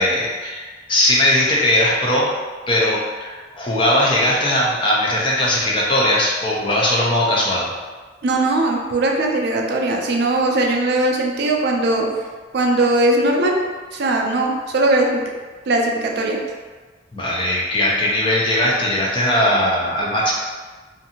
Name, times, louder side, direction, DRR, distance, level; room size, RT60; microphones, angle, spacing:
voice 1, 0.0-2.3 2.7-7.7 17.1-20.3, left 1 dB, 25° left, -4 dB, 0.5 m, -19 dB
voice 2, 8.2-12.1 12.5-13.6 13.9-15.2 15.7-16.4, right 2 dB, 60° right, 1 dB, 0.4 m, -19 dB
2.6 x 2.5 x 2.7 m, 1.4 s
head